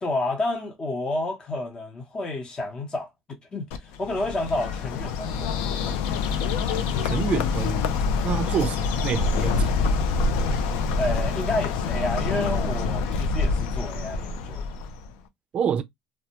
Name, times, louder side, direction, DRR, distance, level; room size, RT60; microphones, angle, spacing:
voice 1, 0.0-6.0 11.0-14.7, left 2 dB, 30° left, 0.8 m, -30 dB
Bird, 3.7-15.1, left 4 dB, 85° left, 0.4 m, -26 dB
voice 2, 7.0-7.9 8.2-9.7 15.5-15.8, right 7 dB, 45° right, 0.3 m, -27 dB
2.2 x 2.0 x 2.8 m
supercardioid pair, 90°, 3 cm